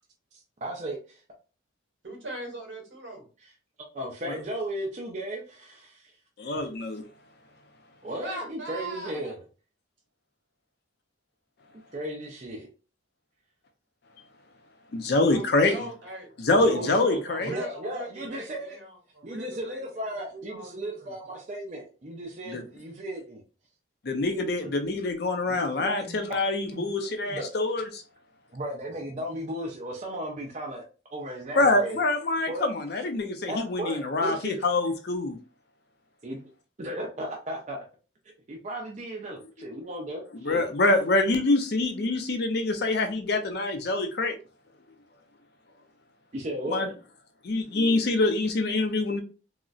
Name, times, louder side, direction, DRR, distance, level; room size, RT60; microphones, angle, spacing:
voice 1, 0.6-1.0 3.4-3.5 3.9-6.2 8.0-9.4 11.9-12.7 16.5-18.8 19.2-23.4 24.6-24.7 25.5-26.2 26.6-27.5 28.5-30.8 31.1-32.0 32.5-32.7 33.5-34.6 36.2-36.4 36.8-37.8 38.5-40.7 46.3-46.9, right 1 dB, 35° right, 0.4 m, -35 dB
voice 2, 2.0-3.3 8.2-9.3 15.3-16.3 16.6-21.1, right 1 dB, 70° right, 1.3 m, -41 dB
voice 3, 6.4-7.0 14.9-15.8 16.4-17.5 22.5-22.6 24.0-28.0 31.6-35.4 40.4-44.3 46.7-46.9 47.4-49.2, left 2 dB, 55° left, 0.5 m, -25 dB
3.8 x 2.0 x 2.4 m
head